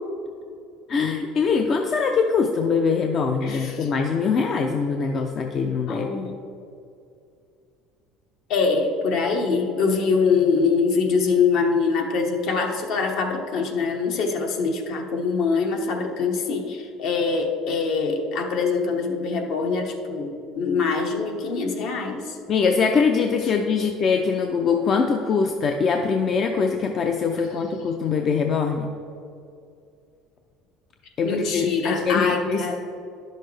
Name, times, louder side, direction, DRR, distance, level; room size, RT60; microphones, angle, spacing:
voice 1, 0.9-6.1 22.5-28.9 31.2-32.8, left 5 dB, 35° left, 4 dB, 0.5 m, -23 dB
voice 2, 3.4-3.9 5.9-6.4 8.5-22.4 23.8-23.9 31.2-32.8, left 4 dB, 60° left, 3 dB, 1.1 m, -24 dB
10.5 x 6.5 x 3.3 m, 2.5 s
cardioid pair, 140°, 0 cm